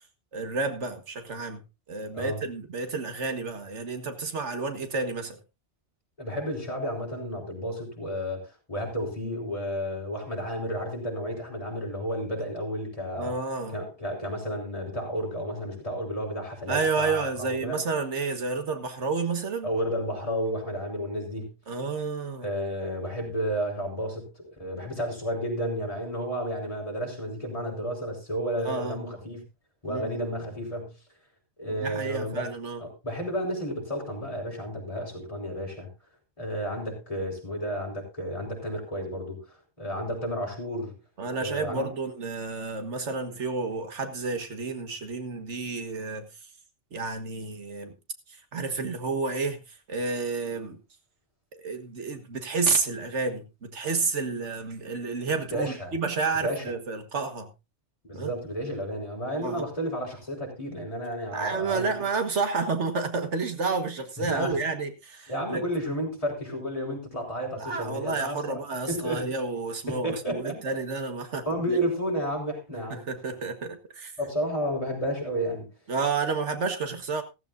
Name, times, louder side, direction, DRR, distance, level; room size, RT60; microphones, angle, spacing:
voice 1, 0.3-1.6 1.9-5.4 13.2-13.8 16.7-19.7 21.7-22.5 28.6-29.0 29.9-30.2 31.8-32.8 41.2-46.3 46.9-48.0 48.3-49.6 49.9-50.8 51.5-57.5 58.1-58.3 59.4-59.7 61.3-65.7 67.6-71.8 72.9-74.1 75.9-77.2, right 4 dB, 90° right, 1.9 m, -30 dB
voice 2, 6.2-13.3 13.7-17.8 19.6-21.5 22.4-29.4 29.8-30.9 31.6-32.5 32.8-35.9 36.4-40.9 41.4-41.9 55.5-55.9 56.4-56.7 58.0-62.0 64.2-64.6 65.3-68.6 68.9-69.2 69.9-70.6 71.4-73.1 74.2-75.7, equal, 30° left, 4.7 m, -32 dB
14.5 x 14.5 x 2.6 m
omnidirectional pair, 1.2 m